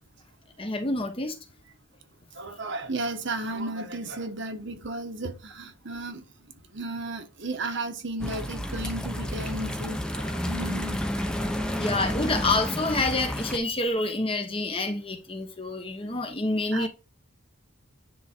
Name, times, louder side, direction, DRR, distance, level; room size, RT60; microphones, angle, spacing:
voice 1, 0.6-1.4 11.7-16.9, left 2 dB, 25° left, 1.2 m, -27 dB
voice 2, 2.3-6.2 6.7-12.0 16.7-16.9, right 2 dB, 55° right, 1.2 m, -34 dB
sound 1, 8.2-13.6, equal, 5° left, 0.9 m, -31 dB
10.0 x 3.7 x 4.5 m
head